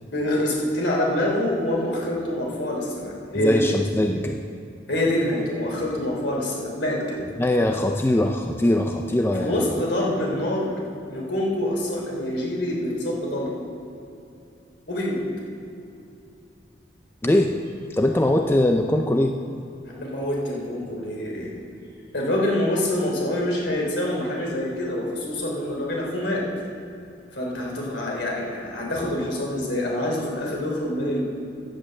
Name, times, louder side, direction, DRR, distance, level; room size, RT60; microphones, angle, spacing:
voice 1, 0.1-3.6 4.9-7.2 9.4-10.7 11.1-13.6 14.9-15.2 19.9-21.5 22.1-26.4 27.3-31.2, left 1 dB, 70° left, -2 dB, 3.3 m, -26 dB
voice 2, 3.4-4.4 7.4-9.6 17.2-17.5 17.9-19.4, left 1 dB, 10° left, 4 dB, 0.4 m, -21 dB
10.5 x 8.6 x 7.6 m, 2.7 s
head